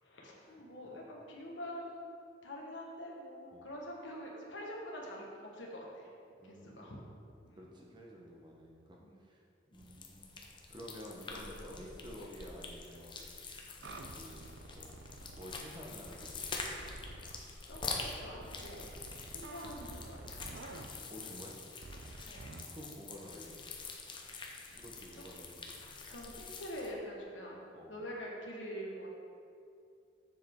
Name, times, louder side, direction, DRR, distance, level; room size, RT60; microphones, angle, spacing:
voice 1, 0.0-2.1 2.4-6.1 6.4-7.0 7.4-7.6 9.0-9.2 9.7-9.9 17.7-18.8 19.3-20.4 22.3-22.5 24.4-24.8 25.1-25.2 26.1-29.1, equal, 85° left, -3 dB, 1.6 m, -45 dB
voice 2, 0.8-1.2 3.5-3.7 6.4-7.1 7.6-9.4 9.7-10.4 10.7-13.3 14.1-15.0 15.3-16.4 19.1-19.3 21.1-21.5 22.7-23.8 24.3-25.9 27.7-28.0, equal, 25° right, -2 dB, 1.1 m, -51 dB
sound 1, 9.7-26.9, left 4 dB, 25° left, 0.7 m, -46 dB
sound 2, 13.8-15.5 16.1-17.4 17.7-20.9 21.8-22.6, right 2 dB, 70° right, 0.6 m, -49 dB
7.4 x 6.8 x 3.8 m, 2.5 s
head